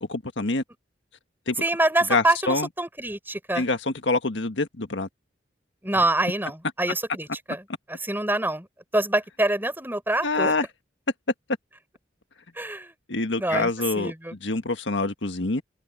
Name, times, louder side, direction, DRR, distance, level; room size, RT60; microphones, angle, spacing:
voice 1, 0.1-0.6 1.5-1.6 2.1-2.7 3.6-5.1 10.2-10.7 13.1-14.1 14.4-15.6, left 3 dB, 85° left, 1.6 m, -25 dB
voice 2, 1.6-3.7 5.8-7.6 7.9-8.7 8.9-10.5 12.6-12.9 13.4-14.3, right 1 dB, 10° right, 5.8 m, -26 dB
head